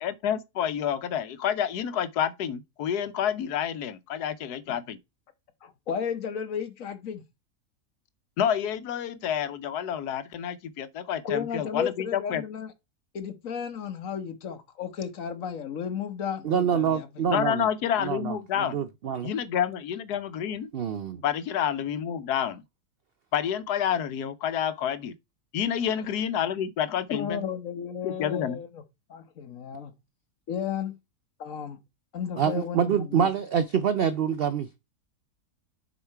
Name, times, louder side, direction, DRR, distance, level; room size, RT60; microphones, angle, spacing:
voice 1, 0.0-5.0 8.4-12.4 17.3-18.8 19.2-20.7 21.2-22.6 23.3-25.1 25.5-27.4 28.0-28.6, left 9 dB, 90° left, 1.3 m, -29 dB
voice 2, 5.6-7.2 11.2-12.7 13.1-17.1 27.1-28.8 29.1-29.9 30.5-30.9 31.4-31.8 32.1-33.3, left 7 dB, 60° left, 1.4 m, -33 dB
voice 3, 16.4-17.7 18.0-19.3 20.7-21.2 32.4-34.8, right 7 dB, 85° right, 0.5 m, -26 dB
6.9 x 4.8 x 4.5 m
omnidirectional pair, 1.6 m